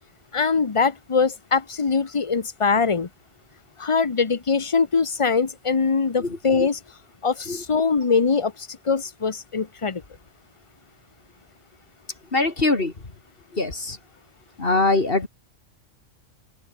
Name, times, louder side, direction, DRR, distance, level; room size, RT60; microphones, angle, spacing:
voice 1, 0.3-3.1 3.8-6.8 7.2-10.0, left 5 dB, 30° left, 0.9 m, -22 dB
voice 2, 6.2-6.7 7.5-7.6 12.3-12.9 13.5-14.0 14.6-15.3, left 2 dB, 50° left, 2.7 m, -23 dB
open air
omnidirectional pair, 1.3 m